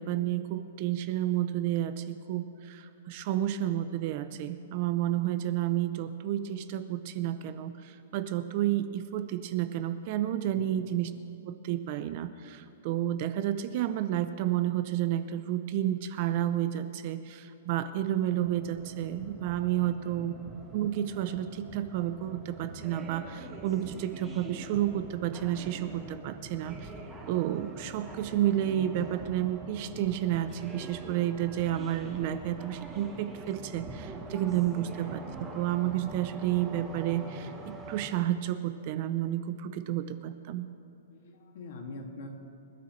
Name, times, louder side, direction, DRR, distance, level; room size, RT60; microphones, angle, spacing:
voice 1, 0.0-11.1 11.5-20.4 20.7-26.9 27.3-35.2 35.5-40.7, right 12 dB, 30° right, 11 dB, 0.5 m, -31 dB
sound 1, 18.3-38.1, right 2 dB, 10° right, 1.1 m, -44 dB
voice 2, 19.8-20.3 34.7-34.9 41.1-42.3, left 3 dB, 45° left, 1 dB, 2.2 m, -44 dB
26.5 x 13.0 x 3.2 m, 2.8 s
hypercardioid pair, 175°, 0 cm